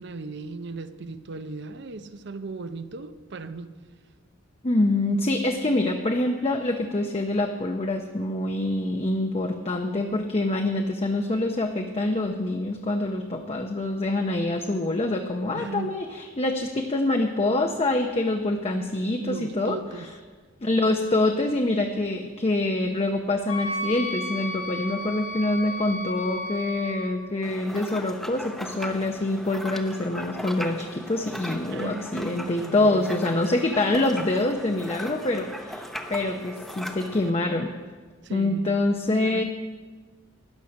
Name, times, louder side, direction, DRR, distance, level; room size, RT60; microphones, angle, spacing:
voice 1, 0.0-3.7 15.5-15.9 19.2-20.1 31.7-33.5 38.2-38.8 39.2-39.4, right 3 dB, 60° right, 11 dB, 0.7 m, -37 dB
voice 2, 4.6-19.8 20.6-37.7 38.3-39.4, left 2 dB, 30° left, 3 dB, 0.7 m, -25 dB
Wind instrument woodwind instrument, 23.5-27.1, left 1 dB, 85° left, 2.7 m, -33 dB
sound 1, 27.4-37.3, equal, ahead, 0.8 m, -38 dB
12.5 x 10.0 x 6.4 m, 1.5 s
head